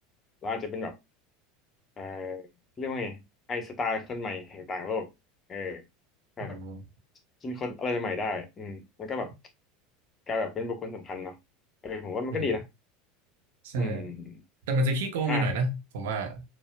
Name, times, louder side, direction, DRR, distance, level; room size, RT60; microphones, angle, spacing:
voice 1, 0.4-1.0 2.0-2.4 2.8-3.2 3.5-5.1 5.5-5.8 6.4-6.6 7.4-9.3 10.3-11.4 11.8-12.6 13.7-14.3 15.3-15.5, left 3 dB, 30° left, 1.3 m, -33 dB
voice 2, 6.4-6.8 12.3-12.5 13.6-14.1 14.7-16.4, right 1 dB, 65° right, 1.1 m, -29 dB
6.8 x 2.8 x 2.4 m
figure-of-eight pair, 75°, 0 cm